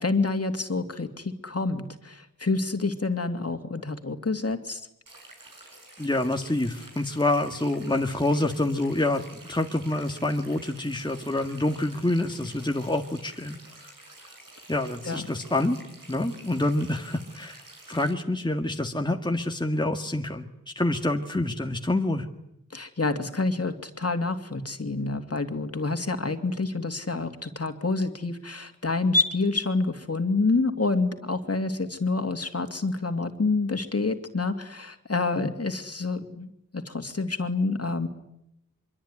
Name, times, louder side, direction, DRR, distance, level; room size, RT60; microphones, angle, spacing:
voice 1, 0.0-4.8 15.1-15.2 22.7-38.1, left 3 dB, 45° left, 6 dB, 2.7 m, -28 dB
sound 1, 5.1-18.1, right 2 dB, 70° right, 7.4 m, -49 dB
voice 2, 6.0-13.6 13.8-13.9 14.7-15.8 16.1-17.6 17.9-20.5 20.8-22.3 35.3-35.5, left 1 dB, 15° left, 3 dB, 1.9 m, -27 dB
25.0 x 23.5 x 10.0 m, 0.80 s
wide cardioid pair, 65°, 34 cm